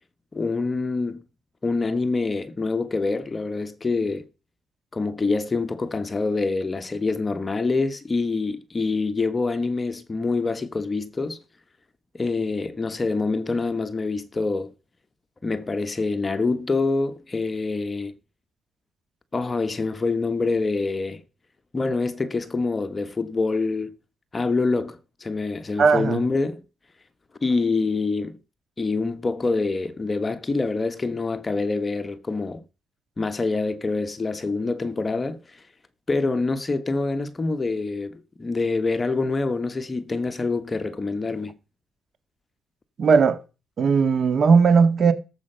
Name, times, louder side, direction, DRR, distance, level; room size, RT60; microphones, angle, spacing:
voice 1, 0.3-1.2 1.6-4.3 4.9-11.4 12.1-14.7 15.4-18.1 19.3-21.2 21.7-23.9 24.3-26.6 27.4-28.4 28.8-32.6 33.2-35.6 36.1-41.5, left 3 dB, 25° left, 1.3 m, -26 dB
voice 2, 25.8-26.2 43.0-43.4 43.8-45.1, right 5 dB, 50° right, 1.8 m, -17 dB
17.0 x 7.8 x 5.7 m
cardioid pair, 90°, 0 cm